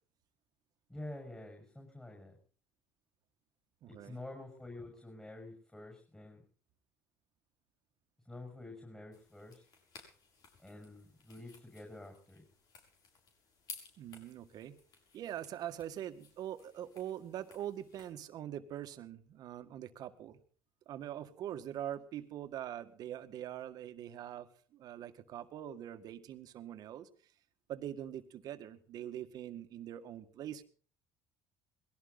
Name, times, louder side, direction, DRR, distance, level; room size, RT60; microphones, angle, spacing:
voice 1, 0.9-2.4 3.9-6.4 8.3-9.6 10.6-12.4, left 2 dB, 10° left, 2 dB, 6.5 m, -48 dB
voice 2, 3.8-4.2 14.0-14.8 15.1-20.4 20.9-27.1 27.7-30.6, right 11 dB, 60° right, 9 dB, 1.9 m, -43 dB
sound 1, 9.1-18.1, left 5 dB, 55° left, 7.0 m, -57 dB
21.0 x 17.0 x 4.2 m, 0.43 s
supercardioid pair, 85°, 8 cm